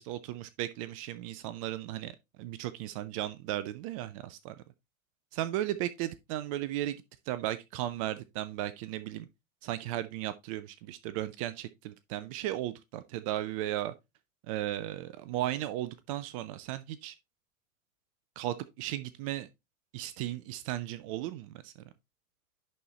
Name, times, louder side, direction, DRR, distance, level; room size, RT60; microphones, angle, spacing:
voice 1, 0.0-2.1 2.4-4.5 5.3-7.0 7.3-9.3 9.6-13.9 14.5-17.2 18.4-19.5 19.9-21.7, right 14 dB, 25° right, 0.4 m, -35 dB
10.5 x 4.3 x 2.9 m
figure-of-eight pair, 90°, 41 cm